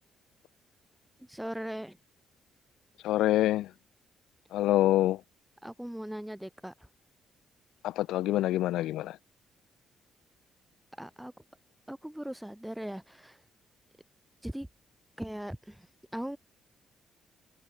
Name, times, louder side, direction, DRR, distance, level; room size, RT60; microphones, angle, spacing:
voice 1, 1.3-2.0 5.6-6.7 11.0-11.3 11.9-13.4 14.4-14.7 15.2-15.9 16.1-16.4, equal, 5° right, 1.4 m, -39 dB
voice 2, 3.0-3.7 4.5-5.2 7.8-9.2, left 14 dB, 90° left, 0.7 m, -26 dB
cardioid pair, 90°, 0 cm